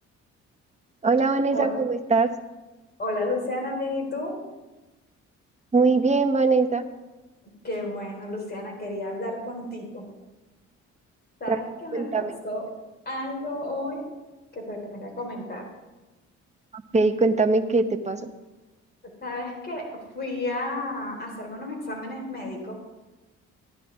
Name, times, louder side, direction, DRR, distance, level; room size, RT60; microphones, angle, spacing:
voice 1, 1.0-2.3 5.7-6.8 11.5-11.6 11.9-12.3 16.9-18.2, right 3 dB, 25° right, 7 dB, 0.9 m, -21 dB
voice 2, 3.0-4.4 7.6-10.0 11.4-12.7 13.1-14.1 14.5-15.6 19.2-19.8 20.1-22.8, left 1 dB, 35° left, 0 dB, 4.4 m, -32 dB
14.5 x 11.0 x 3.6 m, 1.1 s
cardioid pair, 90°, 30 cm